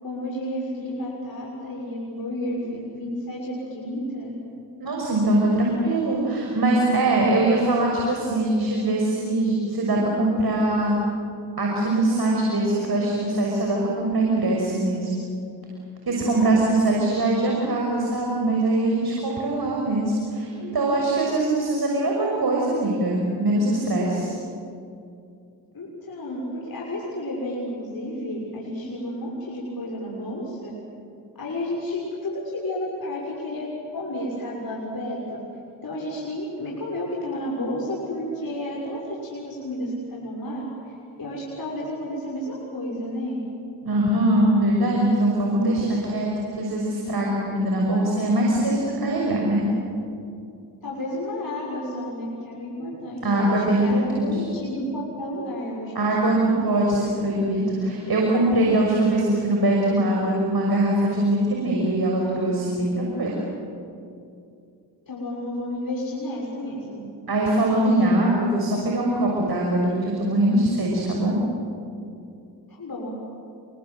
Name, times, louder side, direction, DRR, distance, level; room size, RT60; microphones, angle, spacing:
voice 1, 0.0-4.3 25.7-30.7 31.3-33.7 33.9-35.4 35.8-43.4 50.8-56.5 65.1-67.0 72.7-73.1, left 1 dB, 50° left, -4 dB, 6.5 m, -31 dB
voice 2, 4.8-11.0 11.6-15.1 16.1-24.3 43.8-49.6 53.2-54.4 55.9-63.3 67.3-71.4, right 1 dB, 55° right, -2 dB, 6.3 m, -22 dB
29.5 x 23.5 x 8.0 m, 2.5 s
supercardioid pair, 50°, 45 cm